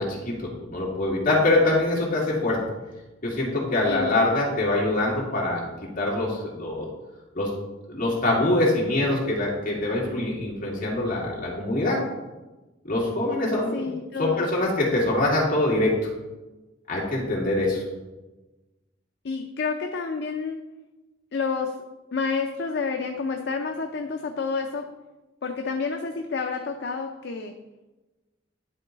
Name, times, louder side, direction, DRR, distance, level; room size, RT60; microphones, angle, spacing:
voice 1, 0.0-2.6 3.2-6.9 7.3-7.5 7.9-12.0 12.8-13.9 14.2-16.1 16.9-17.8, left 2 dB, 45° left, -4 dB, 2.2 m, -24 dB
voice 2, 3.8-4.3 13.7-14.5 19.2-20.6 21.3-21.7 22.1-24.9 25.4-27.5, left 4 dB, 60° left, 4 dB, 0.5 m, -29 dB
10.5 x 3.9 x 4.0 m, 1.1 s
head